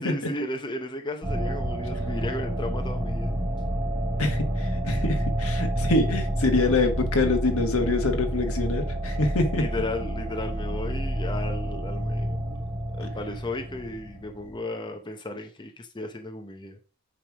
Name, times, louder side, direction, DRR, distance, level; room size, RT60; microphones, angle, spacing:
voice 1, 0.0-3.4 5.7-5.9 9.6-12.6 12.9-16.8, left 2 dB, 20° left, 0.8 m, -35 dB
sound 1, 1.2-14.5, equal, 15° right, 1.2 m, -29 dB
voice 2, 4.2-9.6, left 2 dB, 85° left, 1.5 m, -25 dB
9.0 x 3.4 x 4.9 m
head